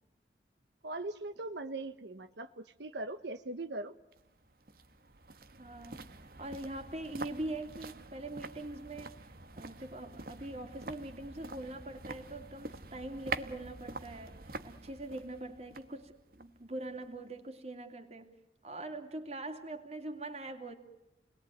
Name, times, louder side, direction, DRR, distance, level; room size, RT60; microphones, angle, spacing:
voice 1, 0.8-3.9, right 2 dB, 85° right, 9 dB, 1.1 m, -40 dB
sound 1, 4.1-17.3 17.6-17.7, right 3 dB, 55° right, 1.2 m, -46 dB
voice 2, 5.6-18.3 18.6-20.7, right 2 dB, 35° right, 6 dB, 2.8 m, -43 dB
29.5 x 21.0 x 9.3 m, 0.90 s
head